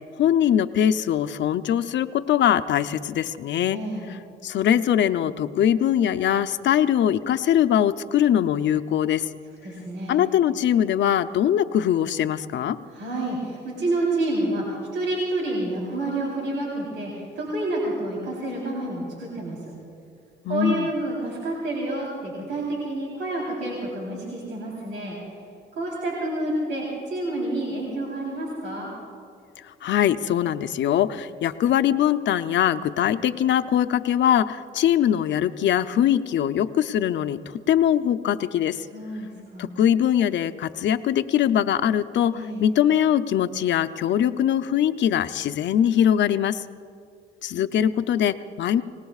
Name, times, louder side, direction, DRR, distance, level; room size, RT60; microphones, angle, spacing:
voice 1, 0.0-3.8 4.1-9.3 10.1-12.8 20.4-20.9 29.8-38.9 39.6-46.6 47.4-48.8, left 10 dB, 65° left, 11 dB, 0.6 m, -22 dB
voice 2, 3.7-4.1 9.6-10.2 12.9-14.6 14.9-19.6 20.5-25.2 25.7-28.9 38.9-39.7 42.3-42.6, right 2 dB, 80° right, -4 dB, 3.7 m, -29 dB
27.0 x 19.5 x 2.4 m, 2.3 s
cardioid pair, 90°, 20 cm